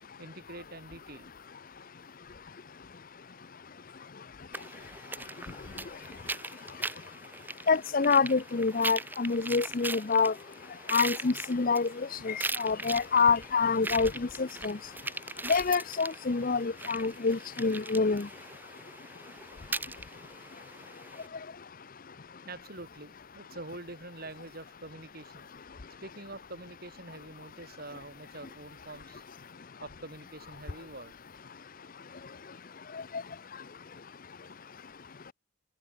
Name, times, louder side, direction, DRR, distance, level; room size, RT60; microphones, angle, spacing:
voice 1, 0.2-1.3 12.7-12.8 13.3-13.4 22.4-25.5 26.0-29.2 29.8-31.1, right 2 dB, 45° right, 5.9 m, -45 dB
sound 1, 4.5-21.3, right 2 dB, 10° right, 2.2 m, -40 dB
voice 2, 7.7-10.3 10.9-14.8 15.4-18.3, left 4 dB, 40° left, 0.6 m, -27 dB
open air
head